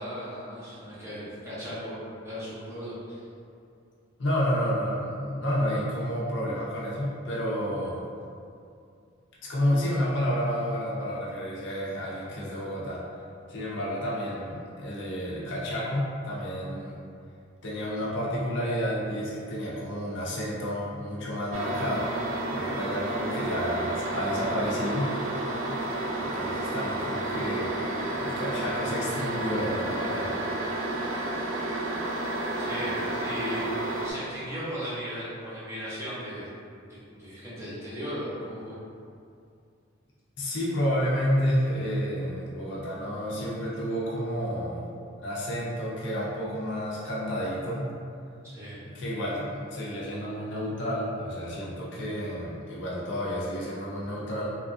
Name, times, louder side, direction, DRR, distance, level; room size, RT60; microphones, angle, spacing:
voice 1, 0.0-3.2 32.6-33.7 34.0-36.5 37.1-38.8 48.4-48.8, equal, 15° right, -11 dB, 0.7 m, -37 dB
voice 2, 4.2-8.0 9.4-13.0 13.5-17.0 17.6-22.1 22.5-25.1 26.2-27.9 28.2-30.3 40.4-44.9 45.2-47.9 48.9-54.6, equal, 60° left, -6 dB, 0.5 m, -30 dB
sound 1, 21.5-34.1, right 1 dB, 75° right, 0.4 m, -31 dB
3.0 x 2.3 x 2.5 m, 2.4 s
head